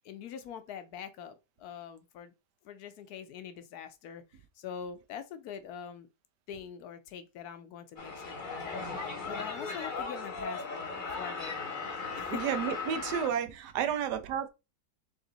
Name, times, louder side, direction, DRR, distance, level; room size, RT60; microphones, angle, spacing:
voice 1, 0.0-2.3 2.6-4.2 4.6-6.1 6.5-12.4 13.9-14.0, left 8 dB, 70° left, 1.0 m, -44 dB
sound 1, 8.0-13.3, left 4 dB, 35° left, 0.9 m, -37 dB
voice 2, 12.3-14.5, right 8 dB, 80° right, 1.3 m, -31 dB
3.6 x 3.3 x 3.9 m
omnidirectional pair, 1.8 m